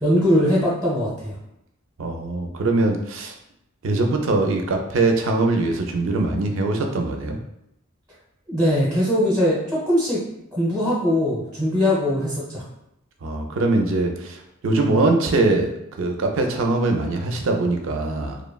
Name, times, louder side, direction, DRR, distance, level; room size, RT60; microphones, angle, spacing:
voice 1, 0.0-1.3 8.5-10.2 10.5-12.6, equal, 15° right, -9 dB, 0.7 m, -21 dB
voice 2, 2.0-3.3 3.8-7.4 13.2-18.4, right 2 dB, 70° right, 3 dB, 0.4 m, -22 dB
2.9 x 2.0 x 2.2 m, 0.80 s
head